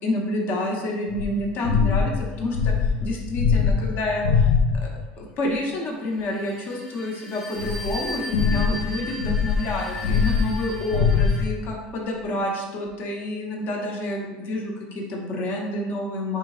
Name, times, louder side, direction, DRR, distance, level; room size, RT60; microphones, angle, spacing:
voice 1, 0.0-4.5 4.8-4.9 5.2-16.4, left 1 dB, 50° left, 0 dB, 1.0 m, -29 dB
sound 1, 1.1-5.1 5.7-5.8 7.6-11.7, left 5 dB, 85° left, 0.3 m, -23 dB
sound 2, 6.1-11.5, left 2 dB, 15° left, 1.0 m, -37 dB
3.7 x 3.3 x 3.2 m, 1.2 s
supercardioid pair, 125°, 4 cm